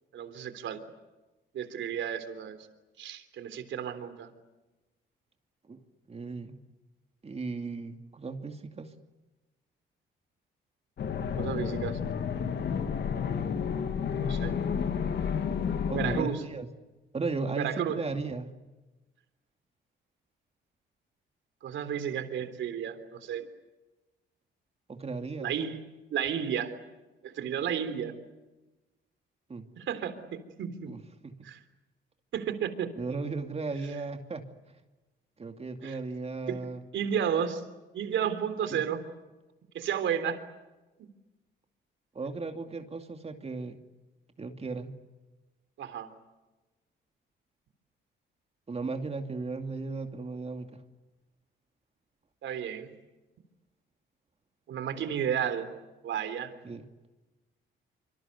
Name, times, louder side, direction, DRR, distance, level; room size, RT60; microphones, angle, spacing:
voice 1, 0.1-0.8 1.5-2.6 3.0-4.3 11.4-12.0 14.1-14.5 15.9-16.5 17.5-18.0 21.6-23.5 25.4-25.8 26.1-26.7 27.2-28.2 29.8-30.2 30.6-30.9 31.4-31.6 32.3-32.9 35.8-36.0 36.5-36.6 36.9-37.6 37.9-39.0 39.7-40.4 41.0-41.1 45.8-46.1 52.4-52.9 54.7-55.7 56.0-56.5, right 8 dB, 75° right, 10 dB, 3.5 m, -32 dB
voice 2, 6.1-6.6 7.2-8.9 15.9-16.7 17.1-18.5 24.9-25.5 29.5-29.7 30.9-31.3 33.0-34.4 35.4-36.8 38.7-38.8 42.1-43.8 44.4-44.9 48.7-50.8 56.6-56.8, right 3 dB, 30° right, 5 dB, 2.6 m, -36 dB
sound 1, 11.0-16.2, left 7 dB, 60° left, 2.3 m, -31 dB
26.0 x 25.5 x 8.2 m, 1.1 s
cardioid pair, 90°, 20 cm